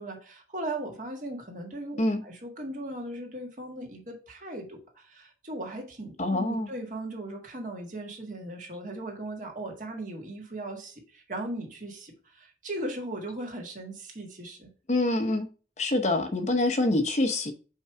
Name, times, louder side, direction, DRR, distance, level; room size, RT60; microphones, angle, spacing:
voice 1, 0.0-14.7, right 1 dB, 45° right, 1.7 m, -38 dB
voice 2, 6.2-6.7 14.9-15.5 15.8-17.5, left 2 dB, 40° left, 0.8 m, -25 dB
5.5 x 4.6 x 4.7 m
head